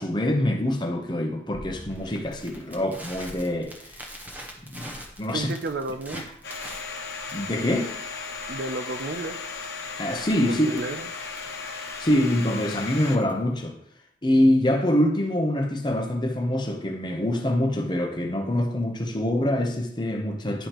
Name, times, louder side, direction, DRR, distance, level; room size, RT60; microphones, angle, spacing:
voice 1, 0.0-4.0 4.6-5.5 6.1-6.2 7.3-7.9 10.0-10.8 12.0-13.8 14.2-20.7, left 1 dB, 25° left, 0.8 m, -25 dB
Crackle, 1.5-13.5, equal, 10° right, 0.9 m, -44 dB
voice 2, 5.3-6.3 8.5-9.4 10.5-11.1, right 2 dB, 60° right, 0.5 m, -32 dB
Domestic sounds home sounds, 6.4-13.2, left 4 dB, 65° left, 1.0 m, -36 dB
10.0 x 4.9 x 3.0 m
head